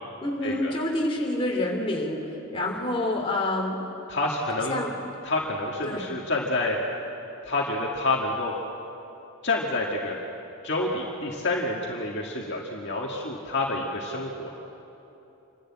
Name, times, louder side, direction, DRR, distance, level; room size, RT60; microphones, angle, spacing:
voice 1, 0.2-3.8 4.7-4.9 5.8-6.1, left 1 dB, 25° left, -1 dB, 2.8 m, -28 dB
voice 2, 4.1-4.8 5.2-6.8 7.4-8.5 9.4-10.2 10.6-14.5, left 2 dB, 50° left, -2 dB, 2.0 m, -28 dB
27.5 x 11.5 x 8.8 m, 3.0 s
head